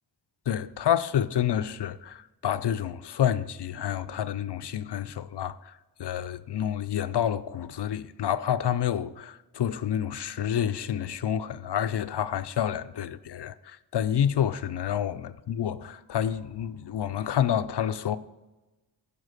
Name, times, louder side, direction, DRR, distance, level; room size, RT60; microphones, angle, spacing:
voice 1, 0.5-18.2, left 10 dB, 65° left, 0.5 m, -29 dB
11.0 x 4.9 x 6.5 m
wide cardioid pair, 55°, 44 cm